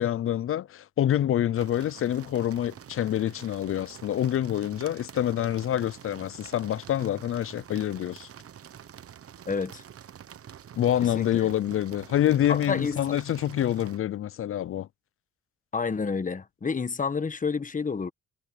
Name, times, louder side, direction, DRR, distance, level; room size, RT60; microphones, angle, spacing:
voice 1, 0.0-8.3 10.8-14.9, left 11 dB, 45° left, 0.5 m, -26 dB
sound 1, 1.5-14.0, right 9 dB, 50° right, 1.0 m, -47 dB
voice 2, 9.5-9.8 11.1-11.4 12.5-13.0 15.7-18.1, left 5 dB, 25° left, 1.4 m, -29 dB
cardioid pair, 90°, 30 cm